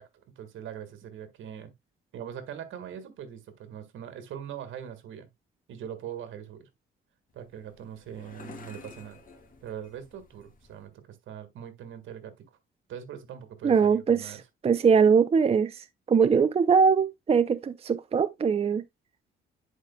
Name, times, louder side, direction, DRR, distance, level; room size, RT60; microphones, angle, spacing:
voice 1, 0.3-1.7 2.1-5.3 5.7-6.7 7.3-9.2 9.6-12.5 12.9-14.4, right 9 dB, 80° right, 1.7 m, -41 dB
sound 1, 7.3-10.9, left 4 dB, 45° left, 2.7 m, -50 dB
voice 2, 13.6-14.4 14.6-18.8, right 6 dB, 30° right, 0.5 m, -22 dB
10.0 x 5.0 x 2.2 m
cardioid pair, 90°, 20 cm